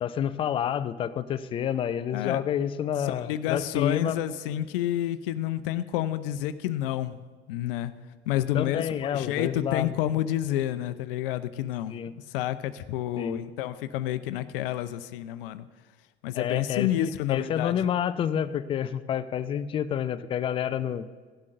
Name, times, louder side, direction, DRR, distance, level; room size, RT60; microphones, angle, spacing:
voice 1, 0.0-4.2 8.5-10.0 11.9-12.1 13.2-13.4 16.3-21.1, left 9 dB, 15° left, 14 dB, 0.3 m, -29 dB
voice 2, 3.0-7.2 7.5-7.9 8.3-15.7 16.2-17.9, left 12 dB, 55° left, 12 dB, 0.6 m, -29 dB
16.5 x 12.0 x 2.6 m, 1.5 s
figure-of-eight pair, 75°, 34 cm